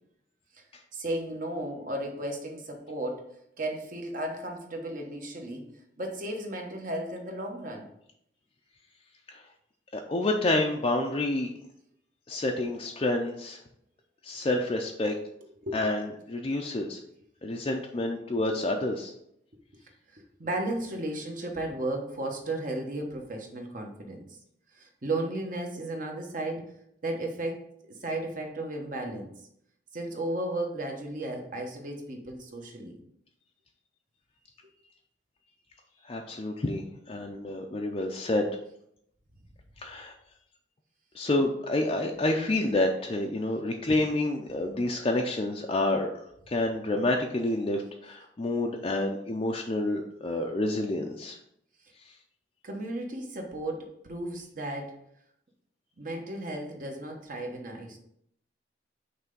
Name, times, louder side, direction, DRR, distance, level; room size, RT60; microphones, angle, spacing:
voice 1, 0.9-3.3 3.6-5.7 6.0-7.9 15.6-15.8 20.1-24.2 24.7-26.7 27.0-29.3 29.9-33.0 52.6-55.0 56.0-58.0, right 1 dB, 50° right, 2 dB, 1.1 m, -34 dB
voice 2, 9.9-11.5 12.3-13.6 14.2-15.1 15.7-17.0 17.4-19.1 36.0-38.5 39.8-40.1 41.1-46.1 46.5-51.4 52.1-52.2, left 2 dB, 30° left, 1 dB, 0.4 m, -28 dB
5.7 x 3.3 x 5.3 m, 0.73 s
head